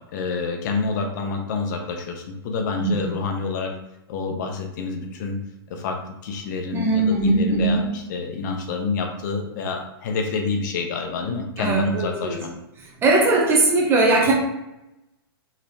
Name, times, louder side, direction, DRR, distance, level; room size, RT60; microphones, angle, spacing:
voice 1, 0.1-3.7 4.1-5.4 5.7-12.5, left 4 dB, 45° left, 3 dB, 0.7 m, -28 dB
voice 2, 6.7-7.8 11.6-12.4 13.0-14.3, right 2 dB, 15° right, -2 dB, 0.9 m, -19 dB
5.0 x 3.2 x 2.7 m, 0.89 s
hypercardioid pair, 150°, 13 cm